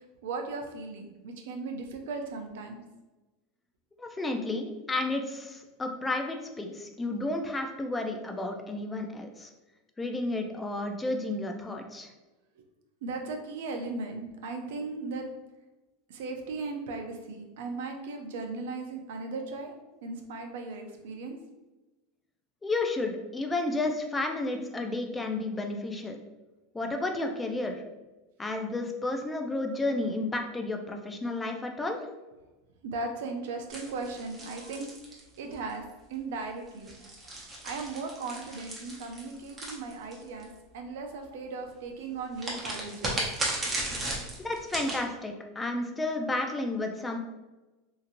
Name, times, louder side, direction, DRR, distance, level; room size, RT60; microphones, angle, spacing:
voice 1, 0.2-2.8 13.0-15.2 16.1-19.7 20.0-21.4 32.8-34.9 35.4-35.8 36.1-37.1 37.6-40.5 40.7-43.2, right 3 dB, 75° right, 4 dB, 0.5 m, -37 dB
voice 2, 4.0-9.5 10.0-12.1 22.6-26.2 26.7-27.8 28.4-32.0 44.4-47.2, left 2 dB, 10° left, 4 dB, 0.4 m, -32 dB
sound 1, 33.7-35.7 36.7-40.4 42.4-45.0, right 1 dB, 20° right, 0.8 m, -35 dB
2.8 x 2.7 x 2.5 m, 1.1 s
supercardioid pair, 130°, 0 cm